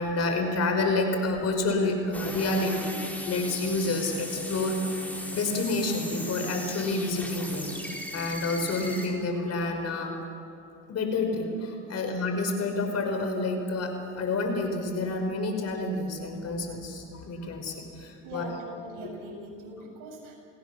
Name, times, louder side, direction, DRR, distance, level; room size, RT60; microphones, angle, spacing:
voice 1, 0.0-4.8 5.3-10.2 10.9-18.5, left 2 dB, 45° left, 5 dB, 5.4 m, -29 dB
sound 1, 2.1-9.1, left 1 dB, 5° left, 5.0 m, -38 dB
voice 2, 18.2-20.3, right 1 dB, 65° right, -2 dB, 7.8 m, -42 dB
30.0 x 17.5 x 7.2 m, 2.6 s
supercardioid pair, 95°, 36 cm